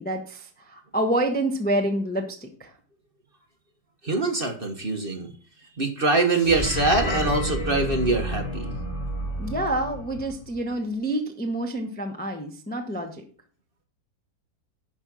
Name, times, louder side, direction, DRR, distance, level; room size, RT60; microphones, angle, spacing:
voice 1, 0.0-2.7 9.4-13.2, right 1 dB, 5° left, 3 dB, 0.9 m, -28 dB
voice 2, 4.0-5.3 5.8-8.7, right 2 dB, 35° right, 3 dB, 1.5 m, -23 dB
sound 1, 6.3-10.7, equal, 25° left, 1.8 m, -30 dB
10.5 x 5.4 x 6.2 m, 0.42 s
omnidirectional pair, 1.9 m